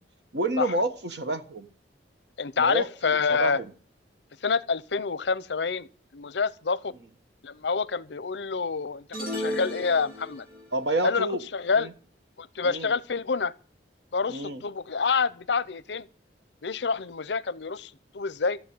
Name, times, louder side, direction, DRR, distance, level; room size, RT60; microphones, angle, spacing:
voice 1, 0.3-1.7 2.6-3.7 10.7-11.4 11.7-11.9 12.6-12.9 14.3-14.6, right 1 dB, 75° right, 1.5 m, -29 dB
voice 2, 2.4-3.6 4.4-6.9 7.4-9.0 9.3-10.4 11.0-11.9 12.4-13.5 14.1-16.1 16.6-18.6, left 5 dB, 80° left, 0.7 m, -27 dB
sound 1, 9.1-10.7, left 1 dB, 50° right, 3.8 m, -34 dB
14.5 x 7.3 x 8.9 m
head